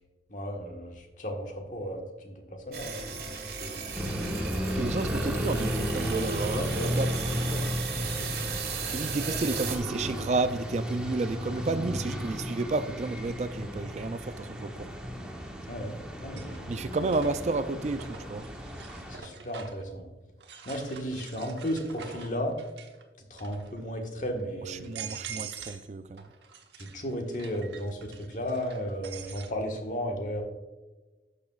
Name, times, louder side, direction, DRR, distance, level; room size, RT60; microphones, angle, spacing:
voice 1, 0.3-3.8 6.5-6.9 7.5-7.6 7.9-8.3 9.2-9.4 15.7-16.7 19.1-20.1 20.6-22.6 23.3-24.9 26.8-30.4, equal, 45° left, 1.4 m, -35 dB
sound 1, 2.7-9.8, right 5 dB, 60° right, 1.7 m, -36 dB
sound 2, 3.9-19.2, equal, 5° right, 0.9 m, -34 dB
voice 2, 4.8-7.3 8.9-14.9 16.7-18.4 24.7-26.2, right 3 dB, 40° right, 0.3 m, -31 dB
sound 3, 13.5-13.6 15.3-15.7 16.1-19.9 20.4-23.0 23.3-23.8 24.4-24.5 24.8-25.9 26.2-29.5, right 7 dB, 85° right, 1.0 m, -45 dB
11.5 x 6.8 x 2.4 m
head